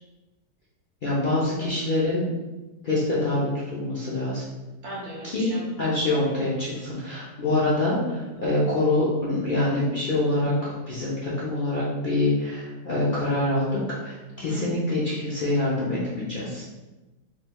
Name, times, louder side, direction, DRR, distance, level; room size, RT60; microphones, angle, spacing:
voice 1, 1.0-2.3 2.8-4.4 5.3-5.5 5.8-16.6, left 2 dB, 75° left, -8 dB, 0.4 m, -25 dB
voice 2, 4.8-5.7 8.3-8.6 14.4-14.6, equal, 45° right, -4 dB, 1.1 m, -38 dB
4.4 x 3.2 x 2.2 m, 1.1 s
omnidirectional pair, 1.9 m